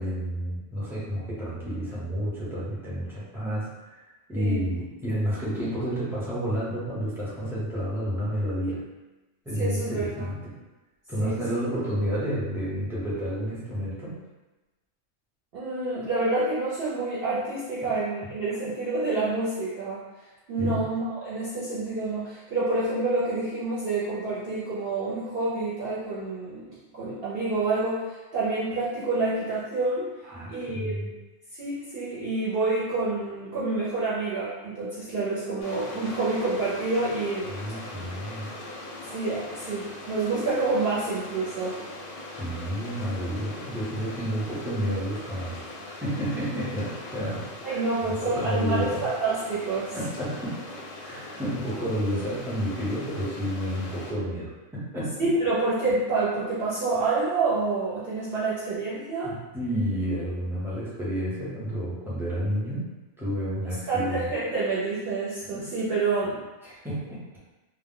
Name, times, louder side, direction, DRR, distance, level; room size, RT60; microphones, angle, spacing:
voice 1, 0.0-8.8 9.4-10.5 11.1-14.2 17.8-17.9 20.6-20.8 30.2-31.1 37.5-38.5 42.4-45.7 46.0-47.8 48.2-49.0 49.9-50.6 51.0-55.3 59.2-62.9 63.2-64.2 65.4-65.7 66.6-67.2, equal, 5° right, -9 dB, 0.5 m, -30 dB
voice 2, 4.4-4.7 9.6-10.3 11.2-11.4 15.5-20.0 20.5-26.6 26.9-30.1 30.5-31.1 31.5-37.5 39.0-41.8 47.6-50.0 55.2-59.3 63.9-66.4, right 3 dB, 55° right, -9 dB, 0.7 m, -28 dB
sound 1, 35.6-54.1, left 2 dB, 60° left, 0.6 m, -40 dB
2.1 x 2.1 x 3.6 m, 1.1 s
omnidirectional pair, 1.3 m